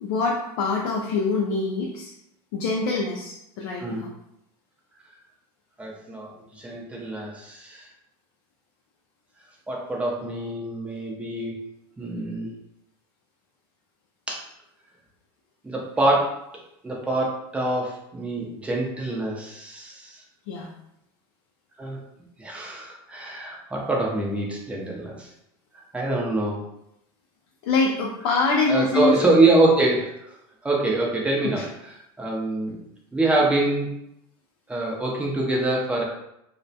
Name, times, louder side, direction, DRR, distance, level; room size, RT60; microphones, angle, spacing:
voice 1, 0.0-2.1 2.5-4.1 20.5-20.7 27.6-29.2 31.6-31.7, left 3 dB, 70° left, -1 dB, 0.4 m, -25 dB
voice 2, 5.8-6.3 6.5-7.9 9.7-11.5 12.0-12.5 14.3-14.4 15.6-16.3 16.8-20.2 21.8-22.0 22.4-25.3 25.9-26.6 28.7-30.3 30.6-32.8 33.1-33.9 34.7-36.0, right 2 dB, 10° right, -2 dB, 0.5 m, -25 dB
2.2 x 2.1 x 2.6 m, 0.81 s
supercardioid pair, 135°, 14 cm